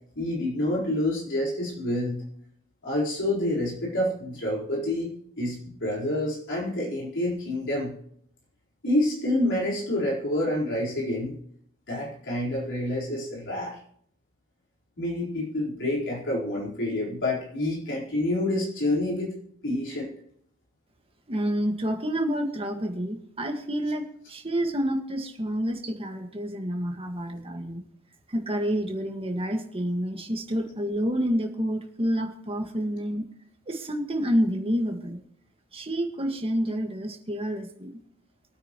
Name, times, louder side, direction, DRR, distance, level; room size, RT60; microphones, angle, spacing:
voice 1, 0.2-2.2 2.8-7.9 8.8-11.4 11.9-13.8 15.0-19.3 19.6-20.1, left 1 dB, 55° left, -4 dB, 4.3 m, -28 dB
voice 2, 21.3-27.8 28.3-33.3 33.7-35.2 35.7-38.0, equal, 25° right, 3 dB, 1.8 m, -28 dB
24.5 x 9.0 x 3.1 m, 0.68 s
head